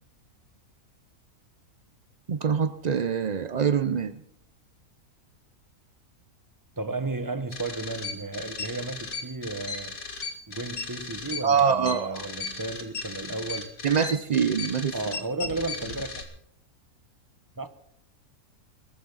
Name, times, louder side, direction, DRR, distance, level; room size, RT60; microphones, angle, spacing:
voice 1, 2.3-4.2 11.4-12.3 13.8-14.9, right 6 dB, 70° right, 0.4 m, -24 dB
voice 2, 6.8-10.0 10.5-13.7 14.9-16.2 17.6-17.7, right 3 dB, 15° right, 1.0 m, -33 dB
sound 1, 7.5-16.2, left 4 dB, 60° left, 2.7 m, -36 dB
22.0 x 13.5 x 4.1 m
omnidirectional pair, 1.6 m